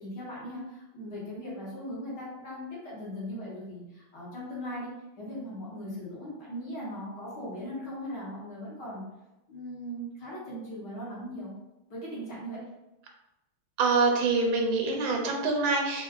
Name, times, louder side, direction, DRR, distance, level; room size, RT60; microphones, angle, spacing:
voice 1, 0.0-4.9 5.2-9.0 9.5-11.5 11.9-12.6, equal, 60° left, -7 dB, 1.5 m, -39 dB
voice 2, 13.8-16.0, right 3 dB, 80° right, 1 dB, 1.4 m, -25 dB
3.7 x 2.4 x 2.3 m, 0.94 s
omnidirectional pair, 2.2 m